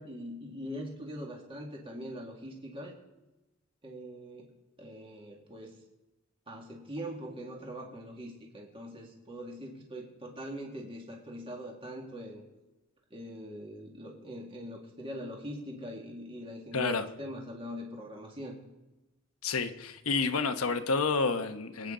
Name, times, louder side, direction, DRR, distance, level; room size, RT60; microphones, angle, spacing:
voice 1, 0.0-2.9 3.8-4.5 4.8-5.7 6.5-12.4 13.1-18.6, equal, 25° right, -1 dB, 2.1 m, -42 dB
voice 2, 16.7-17.0 19.4-21.9, left 4 dB, 85° left, 7 dB, 1.0 m, -29 dB
24.5 x 9.0 x 3.8 m, 1.0 s
head